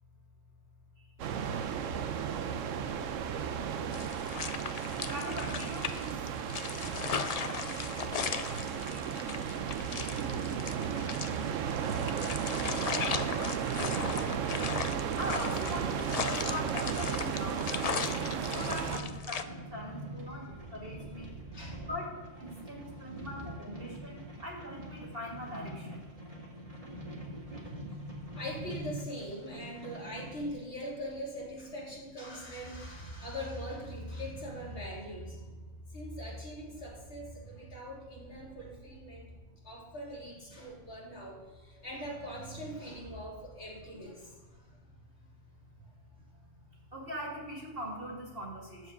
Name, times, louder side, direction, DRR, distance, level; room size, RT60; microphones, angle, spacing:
sound 1, 1.2-19.0, right 8 dB, 90° right, 1.1 m, -34 dB
sound 2, 3.9-19.4, left 6 dB, 50° left, 0.5 m, -37 dB
voice 1, 5.1-6.1 15.2-20.5 20.7-21.3 21.9-22.1 22.4-26.0 46.9-48.8, equal, 50° right, -1 dB, 2.6 m, -41 dB
sound 3, 17.6-30.5, right 1 dB, 30° right, 2.1 m, -46 dB
voice 2, 21.5-21.9 22.8-23.3 27.7-27.8 28.3-35.6 35.9-39.3 39.6-44.8 45.8-45.9 46.3-46.6, equal, 65° left, -4 dB, 3.4 m, -42 dB
13.0 x 4.9 x 7.9 m, 1.3 s
omnidirectional pair, 1.3 m